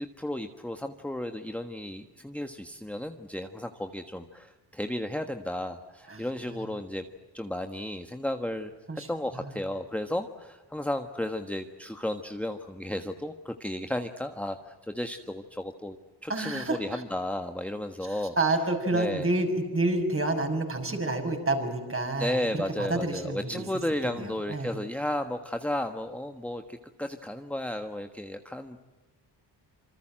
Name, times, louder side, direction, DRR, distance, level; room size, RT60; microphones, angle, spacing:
voice 1, 0.0-7.0 7.3-8.7 9.1-16.0 16.2-18.3 18.9-19.3 22.2-28.8, left 1 dB, 5° left, 5 dB, 1.4 m, -33 dB
voice 2, 6.1-6.7 8.9-9.6 16.3-17.0 18.0-23.6 24.0-24.7, right 2 dB, 30° right, 4 dB, 6.7 m, -29 dB
27.5 x 25.5 x 7.7 m, 1.2 s
cardioid pair, 100°, 43 cm